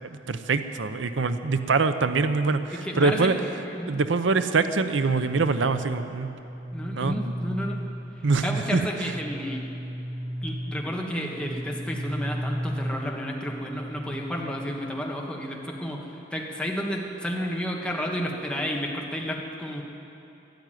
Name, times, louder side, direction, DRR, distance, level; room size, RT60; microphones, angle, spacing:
voice 1, 0.0-3.3 3.9-6.3 6.9-7.2 8.2-9.1, right 4 dB, 85° right, 10 dB, 0.7 m, -24 dB
voice 2, 2.7-3.3 3.6-4.0 6.7-7.8 8.4-9.6 10.4-19.8, equal, 5° left, -1 dB, 1.5 m, -31 dB
sound 1, 5.7-14.9, equal, 35° right, 2.6 m, -36 dB
13.0 x 12.0 x 9.1 m, 2.9 s
head